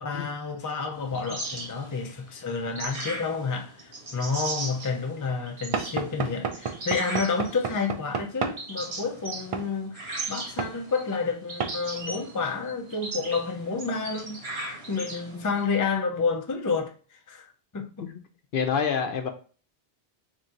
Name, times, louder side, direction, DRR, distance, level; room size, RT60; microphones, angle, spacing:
voice 1, 0.0-14.4 14.9-16.9 17.3-17.5 17.7-18.1, left 4 dB, 30° left, 0.4 m, -30 dB
sound 1, 0.9-15.7, right 2 dB, 75° right, 1.3 m, -38 dB
Knock / Wood, 5.7-8.6 9.5-9.7 10.6-10.8 11.6-11.8, right 5 dB, 55° right, 0.3 m, -31 dB
voice 2, 18.5-19.3, left 6 dB, 60° left, 0.7 m, -27 dB
3.6 x 2.6 x 4.3 m
omnidirectional pair, 1.1 m